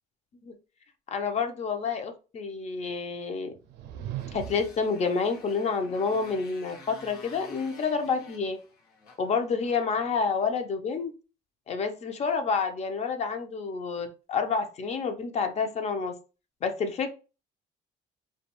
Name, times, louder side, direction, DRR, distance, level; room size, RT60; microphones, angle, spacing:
voice 1, 1.1-3.5 4.3-8.6 9.2-11.1 11.7-16.2 16.6-17.1, left 5 dB, 40° left, 7 dB, 0.5 m, -29 dB
sound 1, 3.5-4.9, right 11 dB, 80° right, 0.4 m, -38 dB
Motorcycle, 4.1-10.6, left 3 dB, 70° left, 0.8 m, -51 dB
2.4 x 2.2 x 2.9 m, 0.33 s
cardioid pair, 110°, 17 cm